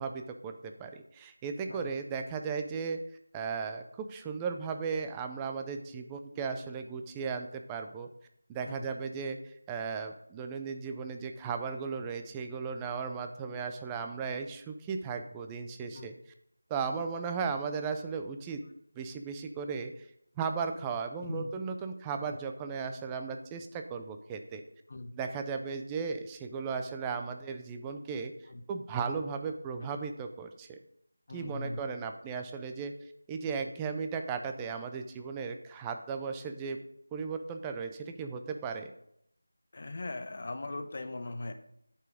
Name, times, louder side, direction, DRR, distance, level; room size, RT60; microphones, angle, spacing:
voice 1, 0.0-3.0 3.3-8.1 8.5-16.1 16.7-18.6 19.0-20.1 20.4-24.6 25.1-28.3 28.7-30.8 31.3-32.9 33.3-36.8 37.1-38.9, right 5 dB, 10° right, 6 dB, 0.4 m, -36 dB
voice 2, 31.3-31.8 39.7-41.5, left 2 dB, 45° left, 8 dB, 0.8 m, -39 dB
8.6 x 4.6 x 4.8 m, 0.72 s
figure-of-eight pair, 170°, 0 cm